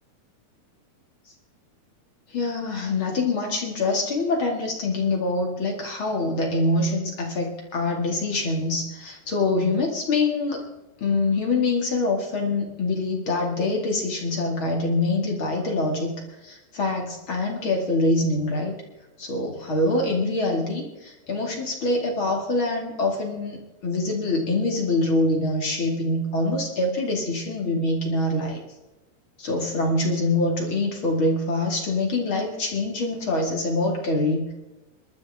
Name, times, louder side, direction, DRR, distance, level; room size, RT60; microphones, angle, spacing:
voice 1, 2.3-10.6 11.0-16.1 16.4-18.7 19.2-28.6 29.4-34.5, left 2 dB, 35° left, 1 dB, 2.6 m, -25 dB
28.5 x 12.5 x 3.7 m, 1.0 s
omnidirectional pair, 4.8 m